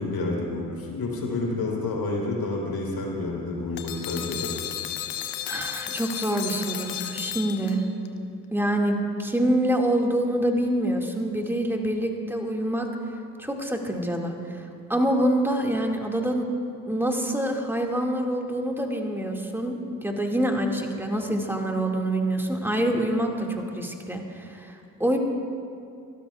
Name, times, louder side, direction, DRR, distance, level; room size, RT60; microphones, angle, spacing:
voice 1, 0.0-4.7, left 2 dB, 55° left, -1 dB, 4.0 m, -29 dB
sound 1, 3.8-8.1, left 11 dB, 90° left, 0.7 m, -34 dB
voice 2, 5.5-7.8 8.5-12.9 13.4-14.6 14.9-16.5 16.9-25.2, right 1 dB, 5° right, 1 dB, 2.2 m, -26 dB
25.0 x 13.0 x 2.4 m, 2.4 s
hypercardioid pair, 40°, 43 cm